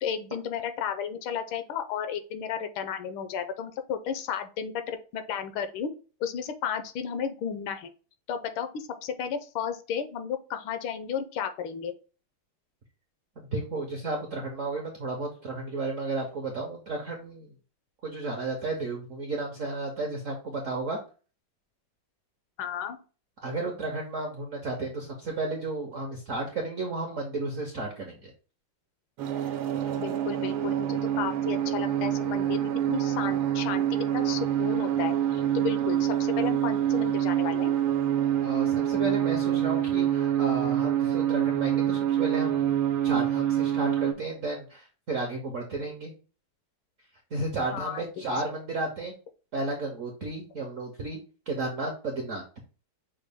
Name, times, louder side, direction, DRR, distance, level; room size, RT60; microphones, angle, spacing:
voice 1, 0.0-5.9 6.2-7.9 8.3-11.9 22.6-23.0 30.0-33.8 34.1-37.7 47.7-48.1, left 8 dB, 75° left, 8 dB, 1.4 m, -33 dB
voice 2, 13.4-17.5 18.0-21.0 23.4-28.3 38.4-46.1 47.3-49.1 49.5-51.2 51.5-52.4, right 2 dB, 65° right, 1 dB, 0.7 m, -33 dB
sound 1, 29.2-44.1, right 11 dB, 85° right, 1.5 m, -26 dB
6.2 x 2.2 x 3.4 m, 0.36 s
omnidirectional pair, 2.3 m